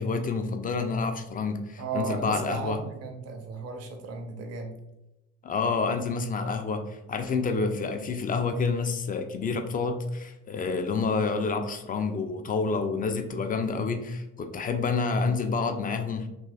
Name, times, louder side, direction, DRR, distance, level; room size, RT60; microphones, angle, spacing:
voice 1, 0.0-2.8 5.4-16.3, left 4 dB, 25° left, 7 dB, 0.4 m, -28 dB
voice 2, 1.8-4.7, right 4 dB, 40° right, 3 dB, 0.6 m, -35 dB
2.9 x 2.8 x 2.3 m, 0.92 s
figure-of-eight pair, 45°, 37 cm